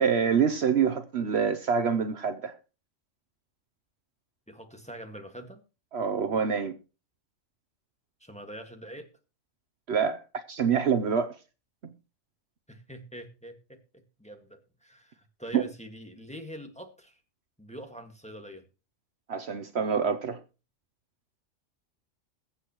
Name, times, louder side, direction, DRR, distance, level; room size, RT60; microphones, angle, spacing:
voice 1, 0.0-2.5 5.9-6.7 9.9-11.4 15.5-15.7 19.3-20.4, right 6 dB, 60° right, 1.0 m, -26 dB
voice 2, 4.5-5.6 8.2-9.1 12.7-17.2 17.6-18.6, equal, 5° left, 1.7 m, -44 dB
22.0 x 8.1 x 3.0 m
omnidirectional pair, 1.3 m